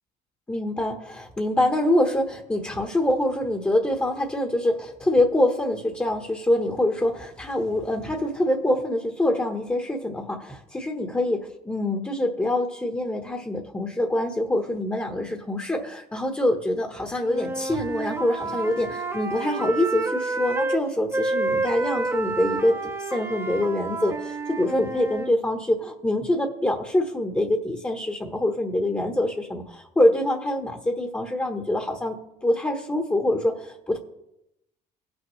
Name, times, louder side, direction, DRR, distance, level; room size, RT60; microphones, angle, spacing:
voice 1, 0.5-32.2 32.4-34.0, left 1 dB, 10° left, 2 dB, 1.2 m, -25 dB
Wind instrument woodwind instrument, 17.3-20.8 21.1-25.3, right 3 dB, 15° right, 0.9 m, -29 dB
18.5 x 6.4 x 3.2 m, 0.85 s
cardioid pair, 110°, 17 cm